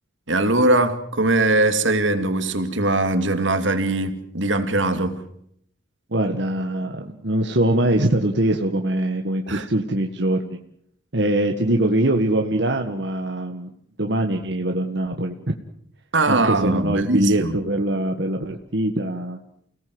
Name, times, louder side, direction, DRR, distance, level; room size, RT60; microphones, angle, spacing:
voice 1, 0.3-5.2 9.5-9.7 16.1-17.6, right 2 dB, 75° right, 2.6 m, -21 dB
voice 2, 6.1-10.6 11.1-13.7 14.0-15.5 16.3-19.4, right 1 dB, 60° right, 1.8 m, -22 dB
29.5 x 18.5 x 7.9 m
head